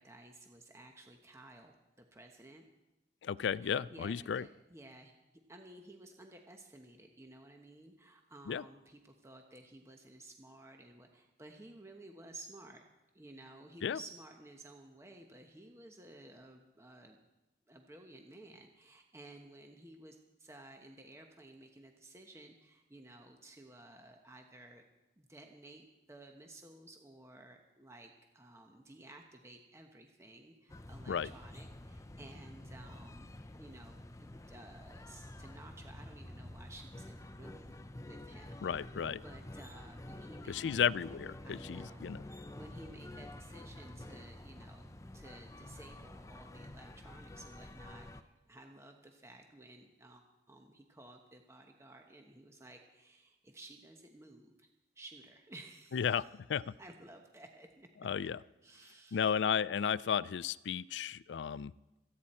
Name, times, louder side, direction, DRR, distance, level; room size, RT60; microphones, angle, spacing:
voice 1, 0.0-2.7 3.6-5.1 5.5-12.8 13.1-17.2 17.7-24.8 25.2-40.8 41.4-44.9 45.1-54.7 54.9-56.2 56.8-57.9 58.6-59.3, right 2 dB, 15° right, 3 dB, 1.0 m, -55 dB
voice 2, 3.2-4.4 8.5-8.6 13.8-14.0 31.1-31.3 38.6-39.2 40.5-42.2 55.9-56.7 58.0-58.4 59.1-61.7, left 7 dB, 90° left, 19 dB, 0.4 m, -34 dB
sound 1, 30.7-48.2, left 1 dB, 15° left, 0.6 m, -49 dB
27.0 x 9.5 x 4.3 m, 1.0 s
head